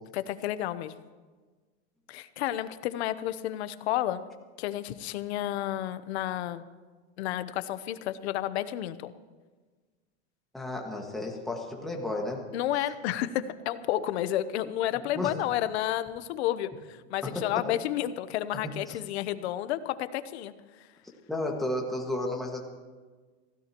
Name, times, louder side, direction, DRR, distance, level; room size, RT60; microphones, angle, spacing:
voice 1, 0.1-0.9 2.1-4.3 4.6-6.6 7.2-9.1 12.5-20.5 20.8-20.9, left 13 dB, 65° left, 13 dB, 0.9 m, -31 dB
voice 2, 10.5-12.4 15.1-15.3 17.2-17.8 18.9-19.0 21.3-22.6, left 2 dB, ahead, -2 dB, 1.8 m, -33 dB
26.0 x 16.5 x 3.0 m, 1.4 s
supercardioid pair, 165°, 35 cm